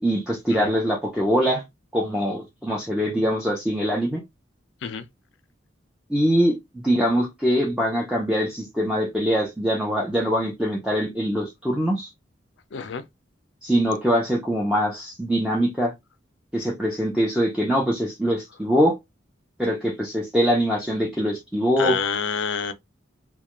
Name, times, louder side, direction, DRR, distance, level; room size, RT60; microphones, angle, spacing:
voice 1, 0.0-1.6 1.9-4.2 6.1-12.1 13.6-15.9 16.5-18.9 19.6-22.0, equal, 5° right, 0.5 m, -23 dB
voice 2, 12.7-13.0 21.8-22.7, left 6 dB, 75° left, 0.4 m, -27 dB
2.3 x 2.1 x 2.9 m
head